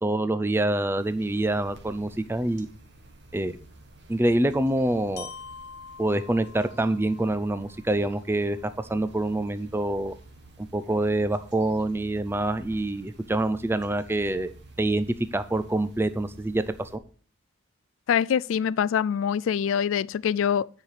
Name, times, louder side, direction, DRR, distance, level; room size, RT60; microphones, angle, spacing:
voice 1, 0.0-2.7 3.3-3.6 4.1-5.3 6.0-10.1 10.7-15.1 15.3-16.9, right 1 dB, 10° right, 0.5 m, -26 dB
sound 1, 1.0-17.0, right 1 dB, 60° right, 1.9 m, -51 dB
Glockenspiel, 5.2-9.1, left 5 dB, 55° left, 1.3 m, -46 dB
voice 2, 18.1-20.7, left 8 dB, 80° left, 0.3 m, -24 dB
9.8 x 5.9 x 4.8 m
head